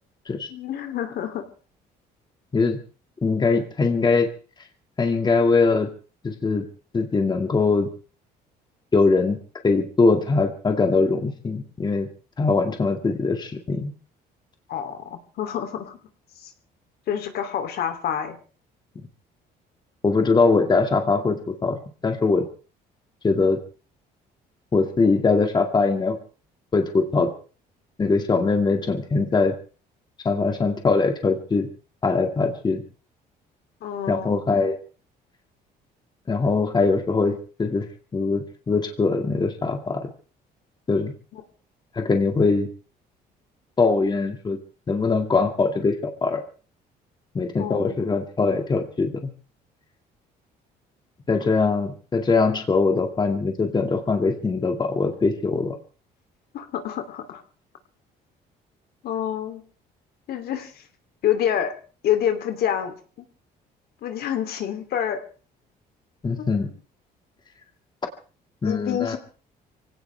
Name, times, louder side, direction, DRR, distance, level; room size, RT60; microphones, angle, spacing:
voice 1, 0.5-1.4 14.7-16.0 16.4-16.5 17.1-18.4 33.8-34.4 41.3-41.4 47.6-48.0 56.5-57.4 59.0-59.6 60.3-60.8 61.2-61.7 62.0-63.2 64.0-65.2 66.4-66.7 68.6-69.2, left 10 dB, 70° left, 6 dB, 3.0 m, -27 dB
voice 2, 3.2-4.3 5.0-5.9 6.2-6.6 6.9-7.9 8.9-9.4 9.6-12.1 12.4-13.9 20.0-22.5 23.2-23.6 24.7-26.2 26.7-27.3 28.0-29.5 30.2-31.7 32.0-32.8 34.1-34.8 36.3-37.9 38.1-40.1 40.9-41.1 41.9-42.7 43.8-44.6 44.9-46.4 47.3-49.3 51.3-55.8 66.2-66.7 68.6-69.2, left 4 dB, 25° left, 5 dB, 2.2 m, -22 dB
24.0 x 17.0 x 3.4 m, 0.38 s
cardioid pair, 110°, 17 cm